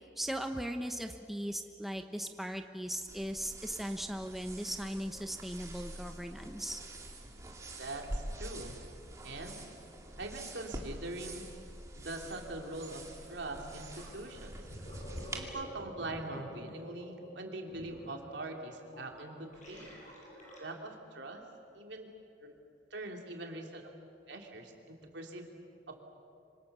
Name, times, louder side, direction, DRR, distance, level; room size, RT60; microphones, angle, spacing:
voice 1, 0.2-6.8, equal, ahead, 5 dB, 0.9 m, -38 dB
sound 1, 3.1-15.4, right 1 dB, 15° right, 2.4 m, -46 dB
voice 2, 7.8-8.8 9.2-9.7 10.2-11.5 11.9-14.6 15.3-19.9 20.6-21.4 21.7-22.1 22.4-22.5 22.9-23.8 24.3-25.5 25.9-26.0, right 2 dB, 75° right, 2 dB, 3.2 m, -42 dB
Gurgling, 13.9-14.1 14.5-21.0, equal, 40° left, 7.8 m, -49 dB
26.0 x 25.5 x 6.9 m, 2.4 s
head